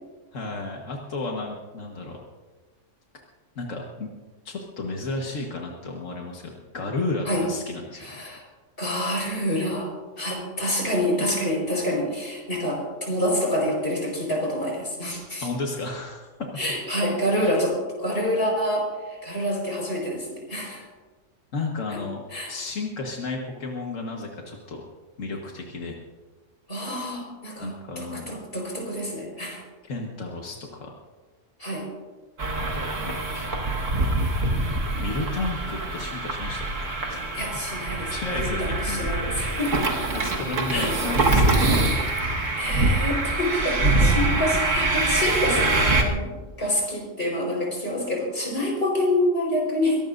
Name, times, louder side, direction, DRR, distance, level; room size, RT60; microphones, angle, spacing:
voice 1, 0.3-2.2 3.6-4.1 4.5-8.2 10.2-10.3 15.4-16.3 21.5-22.2 22.5-24.8 25.2-26.0 27.6-28.4 29.8-30.9 32.6-33.5 35.0-37.2 38.1-39.1 40.1-42.1 43.8-43.9, left 3 dB, 90° left, 0 dB, 1.8 m, -33 dB
voice 2, 7.9-8.4 8.8-9.9 10.2-15.5 16.6-20.9 21.9-22.0 22.3-22.5 26.7-29.6 31.6-31.9 37.3-39.8 40.7-40.9 42.5-50.0, left 1 dB, 45° left, -1 dB, 5.1 m, -27 dB
sound 1, 32.4-46.0, right 2 dB, 80° right, 2.0 m, -24 dB
22.5 x 18.5 x 2.6 m, 1.3 s
omnidirectional pair, 1.3 m